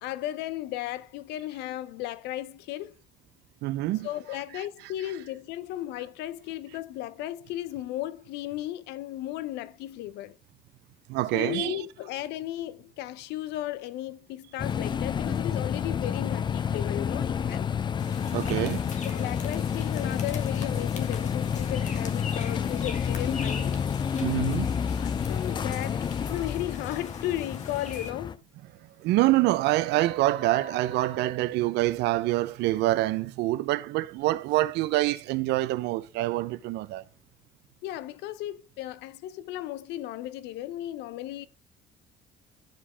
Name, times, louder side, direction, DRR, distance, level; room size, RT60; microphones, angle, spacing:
voice 1, 0.0-2.9 4.0-10.4 11.3-17.7 19.0-23.8 24.9-28.4 37.8-41.5, left 14 dB, 85° left, 0.6 m, -35 dB
voice 2, 3.6-4.1 11.1-11.8 18.3-18.9 24.2-24.8 29.0-37.0, right 17 dB, 85° right, 0.6 m, -26 dB
sound 1, 14.6-28.4, left 7 dB, 25° left, 0.3 m, -29 dB
sound 2, 18.0-28.1, left 5 dB, 45° left, 1.6 m, -44 dB
sound 3, 30.0-33.2, right 3 dB, 35° right, 1.5 m, -47 dB
12.0 x 5.0 x 3.3 m
cardioid pair, 110°, 17 cm